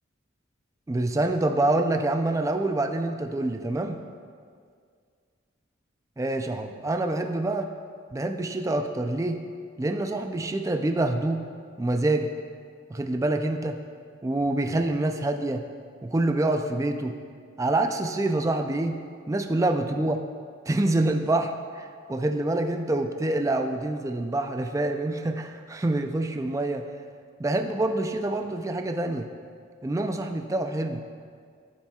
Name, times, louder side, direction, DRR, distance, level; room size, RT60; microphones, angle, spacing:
voice 1, 0.9-4.0 6.2-7.7 8.1-9.4 9.8-11.4 11.8-12.3 12.9-13.8 14.2-15.6 16.0-17.2 17.6-19.0 19.3-20.2 20.7-26.8 27.4-29.3 29.8-31.0, right 2 dB, 15° right, 5 dB, 0.3 m, -26 dB
13.5 x 7.1 x 2.3 m, 2.1 s
head